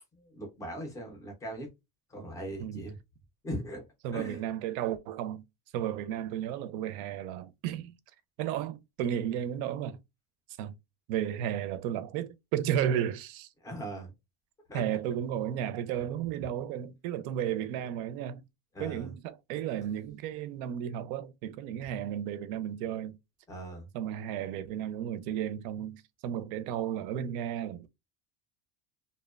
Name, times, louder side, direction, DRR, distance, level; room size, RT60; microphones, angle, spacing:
voice 1, 0.1-1.7 2.1-3.0 3.4-3.8 4.1-4.4 13.6-14.1 14.7-14.8 18.7-19.1 23.5-23.9, right 1 dB, 10° left, 0.3 m, -39 dB
voice 2, 4.0-5.4 5.7-7.9 8.4-10.0 10.6-10.7 11.1-13.5 14.7-18.4 18.8-23.1 23.9-27.9, right 10 dB, 85° right, 0.5 m, -33 dB
2.7 x 2.1 x 2.2 m
cardioid pair, 175°, 43 cm